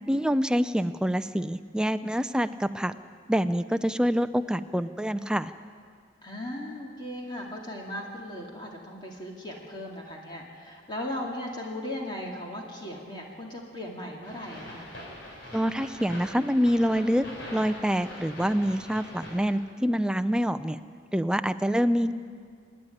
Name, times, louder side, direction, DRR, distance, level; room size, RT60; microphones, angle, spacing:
voice 1, 0.1-2.9 3.3-5.5 15.5-17.3 17.5-20.8 21.1-22.1, equal, 5° right, 12 dB, 0.4 m, -26 dB
voice 2, 6.2-14.9 22.0-22.1, left 1 dB, 25° left, -1 dB, 2.4 m, -37 dB
sound 1, 14.2-19.5, left 1 dB, 60° left, 5.8 m, -43 dB
26.5 x 10.0 x 9.8 m, 2.2 s
head